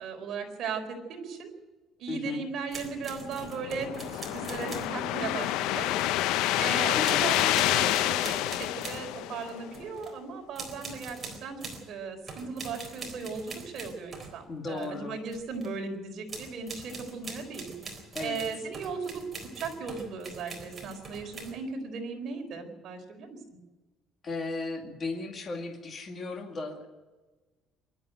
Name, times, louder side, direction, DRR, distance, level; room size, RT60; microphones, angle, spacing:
voice 1, 0.0-1.5 2.0-5.9 6.6-11.6 11.9-17.9 18.2-19.2 19.6-23.4, right 5 dB, 45° right, 3 dB, 4.3 m, -37 dB
voice 2, 2.1-2.5 7.0-7.3 14.5-15.2 18.1-18.5 24.2-26.9, left 3 dB, 25° left, 2 dB, 2.2 m, -36 dB
sound 1, 2.7-5.0 5.3-6.4 7.0-9.1 9.4-10.2 10.6-11.9 12.3-14.9 15.3-15.8 16.3-21.6, right 3 dB, 20° right, 4.0 m, -43 dB
sound 2, 3.3-9.8, left 15 dB, 80° left, 0.5 m, -28 dB
24.0 x 12.0 x 9.1 m, 1.2 s
cardioid pair, 165°, 0 cm